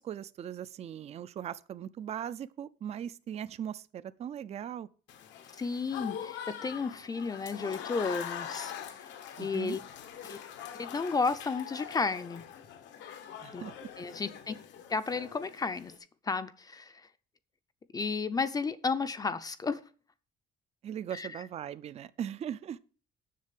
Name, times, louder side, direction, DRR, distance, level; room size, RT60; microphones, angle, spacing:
voice 1, 0.0-4.9 9.4-9.8 13.4-13.7 20.8-22.8, right 9 dB, 35° right, 0.4 m, -39 dB
Applause / Crowd, 5.1-16.0, left 9 dB, 85° left, 1.4 m, -43 dB
voice 2, 5.6-8.7 9.4-9.8 10.2-10.4 10.8-12.4 13.5-13.6 14.0-14.6 14.9-15.9 16.2-17.0 17.9-19.8 21.1-21.3, left 4 dB, 20° left, 0.5 m, -32 dB
7.5 x 6.7 x 8.2 m
cardioid pair, 165°, 18 cm